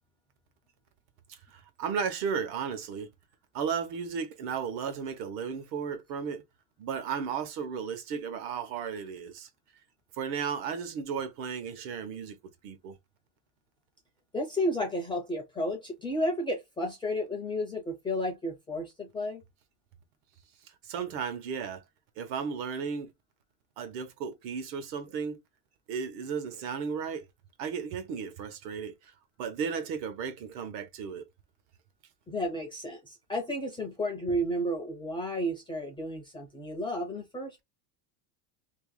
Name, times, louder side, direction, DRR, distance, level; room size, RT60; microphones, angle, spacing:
voice 1, 1.3-3.1 3.5-6.4 6.8-9.5 10.2-12.4 12.6-13.0 20.6-21.8 22.2-23.1 23.8-25.4 25.9-27.3 27.6-29.1 29.4-31.2, right 6 dB, 65° right, 1.1 m, -34 dB
voice 2, 14.3-19.4 32.3-37.6, equal, 10° left, 0.4 m, -32 dB
2.8 x 2.7 x 3.8 m
cardioid pair, 175°, 49 cm